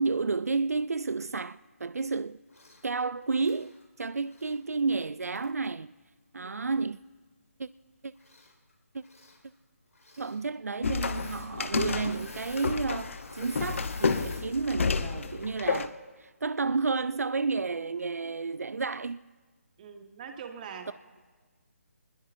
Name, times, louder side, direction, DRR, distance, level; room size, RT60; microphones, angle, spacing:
voice 1, 0.0-2.4 2.8-5.9 6.3-7.0 7.6-7.7 8.0-8.1 8.9-9.0 10.2-19.3, right 4 dB, 85° right, 0.4 m, -31 dB
Engine / Mechanisms, 2.5-2.8 3.2-4.6 5.4-5.5 8.2-8.7 9.0-9.4 9.9-10.4 10.9-11.5 11.8-14.5 15.0-15.2, left 2 dB, 90° left, 4.8 m, -49 dB
sound 1, 10.8-15.9, left 5 dB, 60° left, 1.0 m, -30 dB
voice 2, 17.4-18.3 19.8-20.9, right 7 dB, 35° right, 1.6 m, -44 dB
24.5 x 20.5 x 2.7 m
figure-of-eight pair, 150°, 8 cm